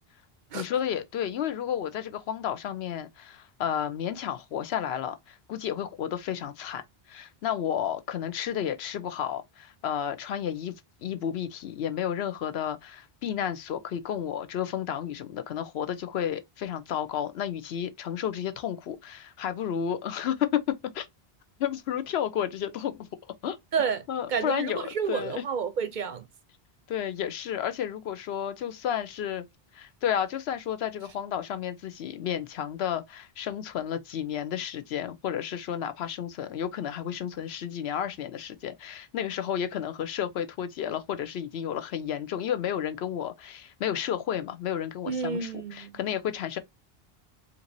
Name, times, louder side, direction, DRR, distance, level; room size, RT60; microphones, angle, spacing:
voice 1, 0.5-6.8 7.1-10.7 11.0-20.6 20.9-21.1 21.6-23.1 23.4-23.6 24.1-25.4 26.9-29.4 29.7-46.6, left 9 dB, 80° left, 0.9 m, -32 dB
voice 2, 23.7-24.0 24.3-26.2 45.1-45.9, right 6 dB, 55° right, 0.6 m, -30 dB
4.4 x 2.6 x 2.6 m
omnidirectional pair, 1.0 m